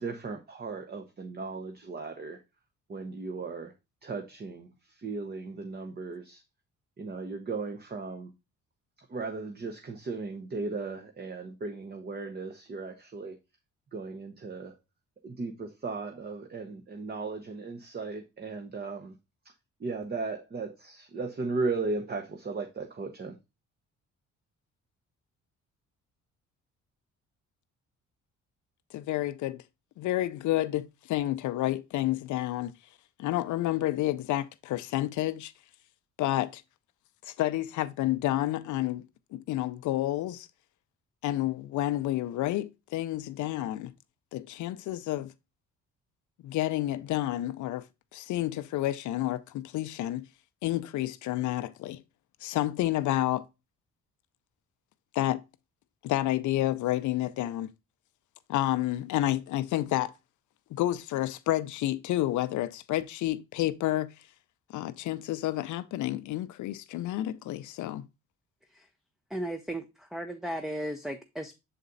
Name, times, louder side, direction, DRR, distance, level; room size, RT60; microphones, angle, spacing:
voice 1, 0.0-2.4 2.9-3.7 4.0-6.4 7.0-8.3 9.1-13.4 13.9-14.7 15.2-19.1 19.8-23.4, right 3 dB, 30° right, 0.8 m, -36 dB
voice 2, 28.9-29.6 30.0-32.7 33.2-35.5 36.2-36.6 37.2-39.1 39.3-40.5 41.2-43.9 44.3-45.3 46.4-47.8 48.1-50.2 50.6-52.0 52.4-53.4 55.1-55.4 56.0-57.7 58.5-60.1 60.7-64.1 64.7-68.1, left 15 dB, 75° left, 0.5 m, -30 dB
voice 3, 69.3-71.6, right 1 dB, ahead, 0.5 m, -35 dB
6.7 x 4.1 x 3.8 m
cardioid pair, 90°, 30 cm